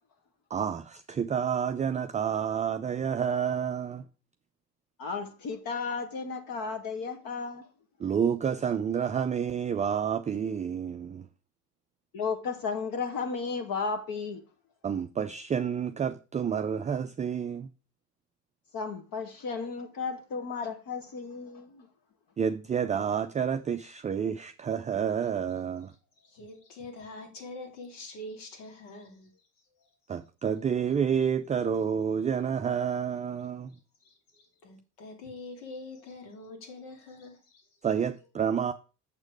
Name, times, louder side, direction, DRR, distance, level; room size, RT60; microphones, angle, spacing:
voice 1, 0.5-4.0 8.0-11.3 14.8-17.7 22.4-25.9 30.1-33.7 37.8-38.7, right 7 dB, 15° right, 0.4 m, -29 dB
voice 2, 5.0-7.6 12.1-14.4 18.7-21.9, left 5 dB, 45° left, 1.7 m, -34 dB
voice 3, 26.2-29.3 29.8-29.9 34.0-37.7, left 2 dB, 75° left, 2.9 m, -45 dB
7.4 x 6.3 x 4.8 m
hypercardioid pair, 75°, 46 cm